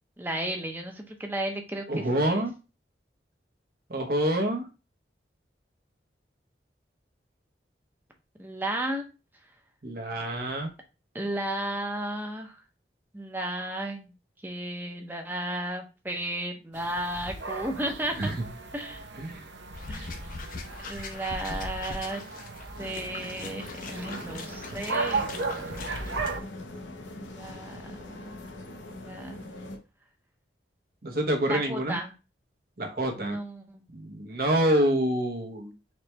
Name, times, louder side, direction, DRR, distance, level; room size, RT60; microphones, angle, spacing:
voice 1, 0.2-2.5 8.4-9.1 11.1-12.6 13.1-14.1 14.4-18.3 18.7-19.1 19.9-20.1 20.8-22.2 22.8-25.3 27.2-28.5 28.9-29.5 31.4-32.1 33.2-33.8, right 1 dB, 10° right, 3 dB, 0.7 m, -34 dB
voice 2, 1.9-2.5 3.9-4.7 9.8-10.7 18.2-18.3 19.2-19.4 31.0-32.0 32.8-33.4 33.9-35.7, right 1 dB, 55° right, 3 dB, 1.0 m, -27 dB
sound 1, 16.7-26.4, right 3 dB, 85° right, 0.7 m, -36 dB
sound 2, 19.7-26.3, left 3 dB, 45° left, 0.6 m, -41 dB
sound 3, 22.7-29.8, left 2 dB, 90° left, 0.8 m, -43 dB
4.3 x 3.2 x 3.3 m, 0.31 s
head